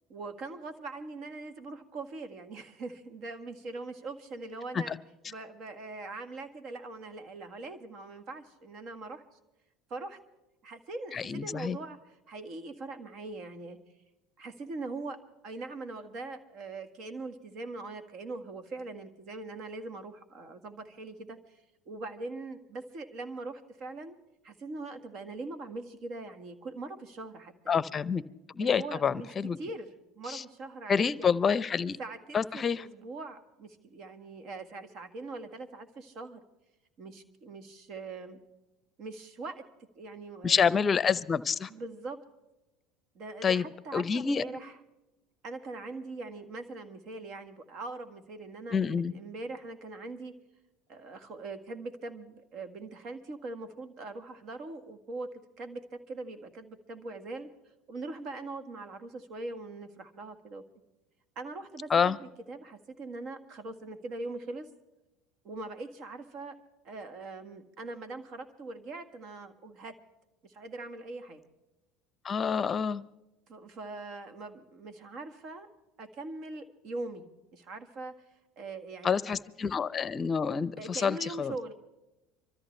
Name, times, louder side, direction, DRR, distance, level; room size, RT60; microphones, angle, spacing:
voice 1, 0.1-4.9 5.2-9.2 9.9-10.2 10.6-13.8 14.4-21.6 21.9-24.2 24.4-28.0 28.6-31.5 32.0-36.4 37.0-38.4 39.0-39.6 40.0-40.7 41.7-42.2 43.2-44.8 45.4-50.3 50.9-55.3 55.6-57.5 57.9-60.6 61.4-64.7 65.4-66.6 66.8-70.0 70.4-71.4 73.5-75.7 76.0-78.2 78.6-79.4 80.8-81.7, right 3 dB, 55° right, 8 dB, 1.7 m, -42 dB
voice 2, 11.1-11.8 27.7-28.2 28.5-29.6 30.3-30.4 30.9-32.0 32.3-32.8 40.4-41.7 43.4-43.7 43.9-44.4 48.7-49.1 61.9-62.2 72.2-73.0 79.0-81.5, left 6 dB, 30° left, 18 dB, 0.7 m, -27 dB
25.5 x 13.5 x 3.3 m, 0.99 s
hypercardioid pair, 85°, 0 cm